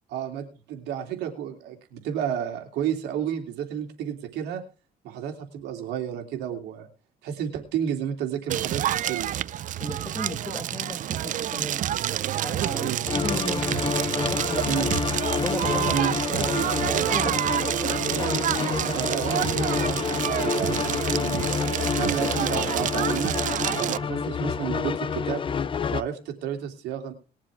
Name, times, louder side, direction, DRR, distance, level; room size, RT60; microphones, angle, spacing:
voice 1, 0.1-4.6 5.0-6.9 7.2-9.4 12.8-13.0 14.6-14.9 15.9-16.1 18.9-23.3 23.8-25.4 25.9-27.1, right 9 dB, 80° right, 3.0 m, -31 dB
Crackle, 8.5-24.0, right 12 dB, 50° right, 0.5 m, -28 dB
voice 2, 9.8-11.8 12.4-14.9 15.3-17.7, left 1 dB, 15° left, 2.1 m, -35 dB
sound 1, 13.0-26.0, left 6 dB, 30° left, 0.7 m, -28 dB
20.5 x 7.5 x 3.5 m
cardioid pair, 110°, 17 cm